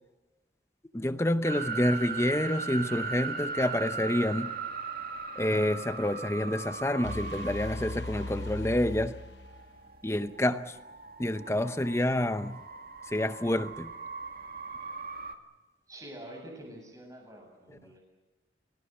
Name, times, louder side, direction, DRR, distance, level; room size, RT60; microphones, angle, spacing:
voice 1, 0.9-4.6 5.4-9.2 10.0-10.8 11.2-12.6 13.1-13.9 17.7-17.8, left 1 dB, 15° left, 0.7 m, -28 dB
sound 1, 1.4-15.3, right 4 dB, 55° right, 2.2 m, -39 dB
sound 2, 7.0-9.9, left 2 dB, 75° left, 0.8 m, -38 dB
voice 2, 11.3-11.8 15.9-18.0, right 1 dB, 20° right, 7.7 m, -46 dB
28.5 x 18.5 x 7.8 m
head